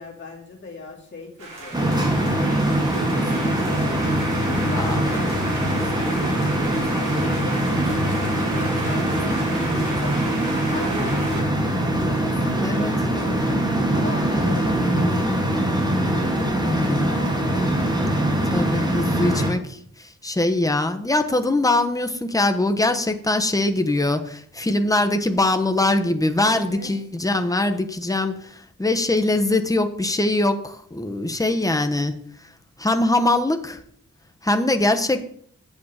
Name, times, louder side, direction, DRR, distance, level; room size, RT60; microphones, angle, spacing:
voice 1, 0.0-1.8 2.2-2.6 3.1-4.0 4.5-10.2 10.6-13.2 13.9-15.6 16.6-17.8 26.5-26.9, left 3 dB, 35° left, -4 dB, 3.0 m, -38 dB
sound 1, 1.4-11.4, right 2 dB, 85° right, 4.9 m, -34 dB
sound 2, 1.7-19.5, right 1 dB, 15° right, 2.4 m, -22 dB
voice 2, 9.5-9.8 12.6-12.9 14.5-14.6 16.6-17.1 18.5-32.2 32.8-33.8 34.4-35.3, left 2 dB, 10° left, 7 dB, 1.0 m, -22 dB
8.8 x 8.0 x 4.9 m, 0.63 s
wide cardioid pair, 80°, 32 cm